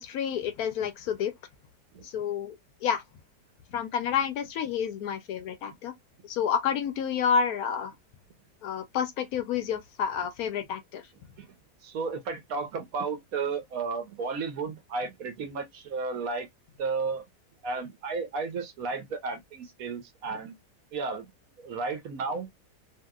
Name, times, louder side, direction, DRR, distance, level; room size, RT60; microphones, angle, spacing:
voice 1, 0.0-1.3 2.0-2.5 2.8-3.0 3.7-5.9 6.2-7.9 8.6-11.0, left 7 dB, 70° left, 1.0 m, -29 dB
voice 2, 11.8-16.5 16.8-17.2 17.6-20.6 20.9-21.3 21.6-22.5, right 4 dB, 65° right, 1.0 m, -33 dB
2.9 x 2.7 x 2.2 m
omnidirectional pair, 1.8 m